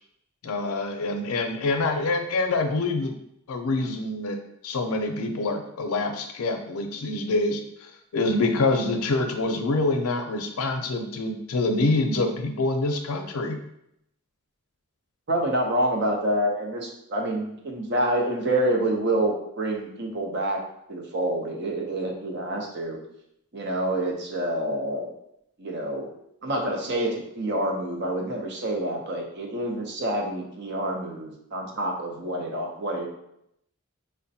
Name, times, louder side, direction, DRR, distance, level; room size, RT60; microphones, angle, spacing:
voice 1, 0.4-3.1 3.5-4.4 4.6-13.6, left 2 dB, 85° left, 5 dB, 0.5 m, -26 dB
voice 2, 15.3-20.6 20.9-23.0 23.5-25.1 25.6-26.1 26.4-33.1, right 1 dB, 50° right, 1 dB, 0.6 m, -27 dB
4.9 x 2.1 x 2.7 m, 0.77 s
head